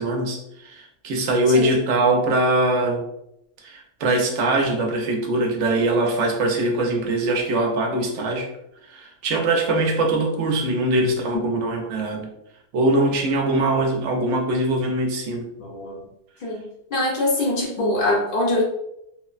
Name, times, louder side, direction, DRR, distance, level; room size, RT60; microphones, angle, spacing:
voice 1, 0.0-3.0 3.6-8.5 8.9-12.3 12.7-15.5, right 2 dB, 80° right, 2 dB, 0.9 m, -22 dB
voice 2, 15.6-16.0 16.4-16.6 16.9-18.6, left 1 dB, 55° left, -2 dB, 0.7 m, -23 dB
2.9 x 2.1 x 2.3 m, 0.79 s
omnidirectional pair, 1.2 m